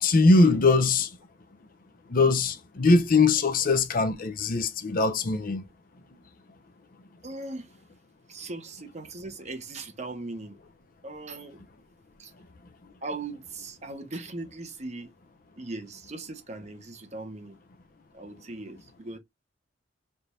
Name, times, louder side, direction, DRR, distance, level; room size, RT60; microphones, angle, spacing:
voice 1, 0.0-1.1 2.1-5.6, left 3 dB, 50° left, 0.6 m, -21 dB
voice 2, 7.2-7.7 8.3-10.6 11.0-11.6 12.2-12.3 13.0-15.1 15.6-17.6 18.1-19.2, right 2 dB, 40° right, 0.9 m, -39 dB
3.4 x 2.6 x 4.3 m
head